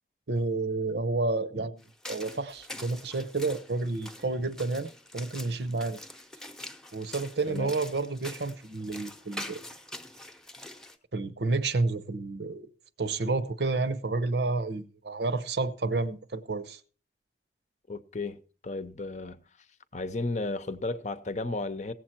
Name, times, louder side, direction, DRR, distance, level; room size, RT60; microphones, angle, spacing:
voice 1, 0.3-6.0 6.9-9.6 11.1-12.7 13.0-16.8, right 3 dB, 65° right, 0.8 m, -30 dB
sound 1, 1.8-11.0, left 1 dB, 5° left, 0.9 m, -45 dB
voice 2, 17.9-18.4 18.6-19.4 19.9-21.9, left 2 dB, 40° left, 0.8 m, -33 dB
17.5 x 7.7 x 4.4 m
head